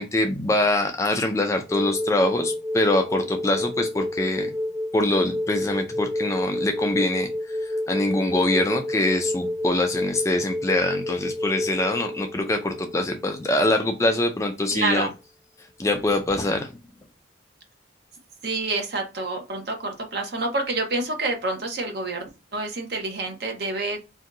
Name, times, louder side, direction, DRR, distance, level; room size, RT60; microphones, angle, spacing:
voice 1, 0.0-4.5 4.9-15.1 15.8-16.7, left 1 dB, 15° left, 4 dB, 0.3 m, -24 dB
sound 1, 1.7-14.1 15.9-16.0, left 1 dB, 5° right, 0.8 m, -30 dB
voice 2, 14.7-15.1 18.4-24.0, right 3 dB, 55° right, 3 dB, 0.8 m, -28 dB
2.6 x 2.2 x 3.7 m, 0.28 s
head